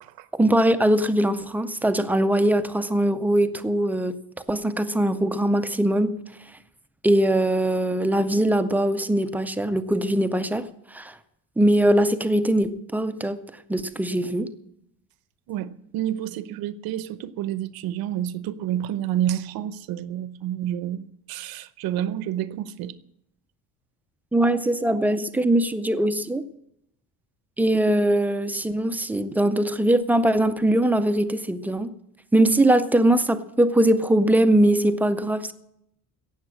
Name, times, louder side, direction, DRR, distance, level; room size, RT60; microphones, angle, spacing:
voice 1, 0.3-4.2 4.5-6.2 7.0-11.1 11.6-13.4 13.7-14.5 24.3-26.4 27.6-31.9 32.3-35.5, right 1 dB, 5° right, 0.4 m, -21 dB
voice 2, 15.5-22.9, right 11 dB, 70° right, 0.9 m, -29 dB
17.0 x 7.3 x 7.4 m
cardioid pair, 175°, 37 cm